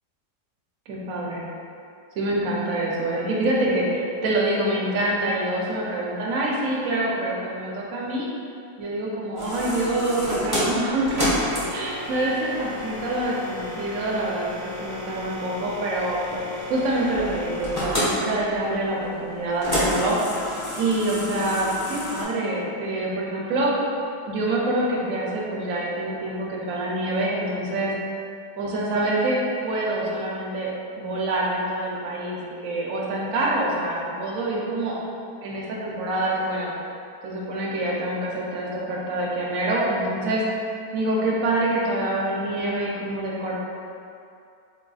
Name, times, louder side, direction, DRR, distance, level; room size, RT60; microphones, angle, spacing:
voice 1, 0.9-1.4 2.2-8.3 8.8-11.3 11.7-16.2 16.7-20.3 20.8-23.7 24.3-27.9 28.6-35.0 35.4-36.7 37.2-40.4 40.9-43.5, right 1 dB, 65° right, -4 dB, 0.9 m, -26 dB
sound 1, 9.4-22.2, left 1 dB, 10° left, 1.0 m, -30 dB
4.4 x 2.5 x 2.3 m, 2.5 s
omnidirectional pair, 1.8 m